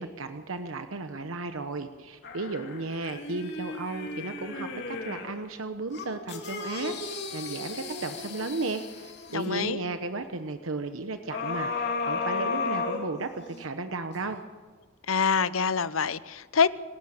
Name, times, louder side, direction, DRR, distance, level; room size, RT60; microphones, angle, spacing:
voice 1, 0.0-14.4, right 3 dB, 70° right, 8 dB, 1.1 m, -34 dB
sound 1, 2.2-5.4 5.9-9.6 11.3-13.6 14.2-14.3, left 4 dB, 55° left, 2.7 m, -34 dB
voice 2, 9.3-9.8 15.1-16.7, left 6 dB, 70° left, 16 dB, 0.8 m, -25 dB
26.5 x 12.5 x 8.9 m, 1.4 s
head